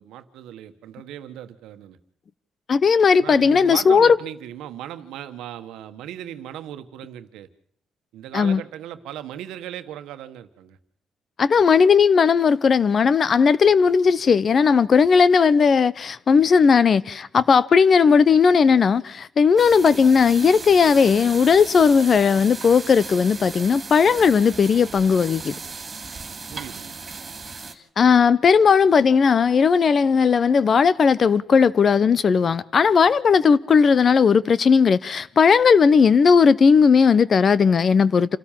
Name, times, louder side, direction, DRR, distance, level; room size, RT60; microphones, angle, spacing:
voice 1, 0.0-2.0 3.2-7.5 8.1-10.8 26.5-27.0, right 11 dB, 90° right, 1.3 m, -37 dB
voice 2, 2.7-4.2 8.3-8.6 11.4-25.5 28.0-38.4, left 6 dB, 45° left, 0.8 m, -17 dB
sound 1, 19.6-27.7, right 4 dB, 35° right, 3.0 m, -36 dB
27.5 x 13.0 x 7.4 m
cardioid pair, 90°, 0 cm